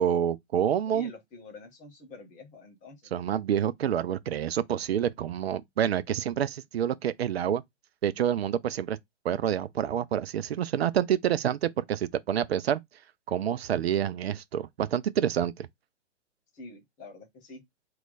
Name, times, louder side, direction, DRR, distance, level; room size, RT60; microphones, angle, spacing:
voice 1, 0.0-1.1 3.1-7.6 8.0-9.0 9.2-12.8 13.3-15.7, right 9 dB, 60° right, 0.5 m, -28 dB
voice 2, 0.9-3.1 16.5-17.6, left 2 dB, 20° left, 1.1 m, -47 dB
3.0 x 2.4 x 3.9 m
figure-of-eight pair, 120°, 36 cm